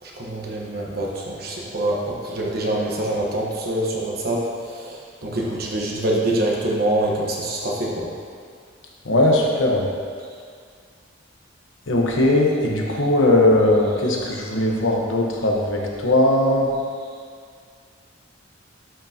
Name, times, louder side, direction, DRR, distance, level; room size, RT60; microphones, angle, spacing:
voice 1, 0.0-8.1 14.0-14.3, right 1 dB, 50° right, -3 dB, 1.1 m, -25 dB
voice 2, 9.1-9.9 11.9-16.7, left 1 dB, 80° left, -1 dB, 1.1 m, -19 dB
11.0 x 5.9 x 2.9 m, 2.1 s
head